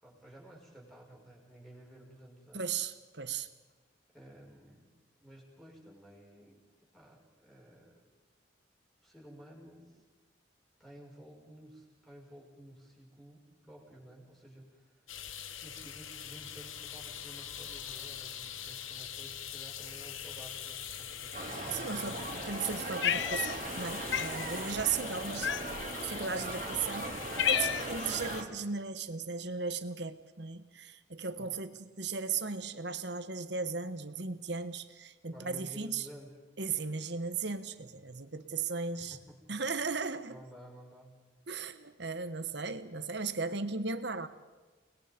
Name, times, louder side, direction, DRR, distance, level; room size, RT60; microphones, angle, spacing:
voice 1, 0.0-2.7 4.1-4.9 5.2-6.6 6.9-8.1 9.0-10.0 10.8-15.2 15.6-21.4 31.4-31.5 35.2-36.3 38.9-39.3 40.3-41.1, right 1 dB, ahead, -2 dB, 5.6 m, -53 dB
voice 2, 2.5-3.5 21.7-25.5 26.0-27.2 27.5-36.1 36.6-39.2 39.5-40.4 41.5-44.3, right 5 dB, 60° right, 10 dB, 1.3 m, -36 dB
sound 1, 15.1-28.4, left 9 dB, 90° left, 1.3 m, -43 dB
sound 2, 21.3-28.5, right 2 dB, 40° right, 2.8 m, -39 dB
Cat, 23.0-23.8 24.1-24.4 25.4-25.9 26.6-26.7 27.1-28.1, left 9 dB, 65° left, 0.6 m, -31 dB
29.5 x 20.5 x 5.3 m, 1.2 s
head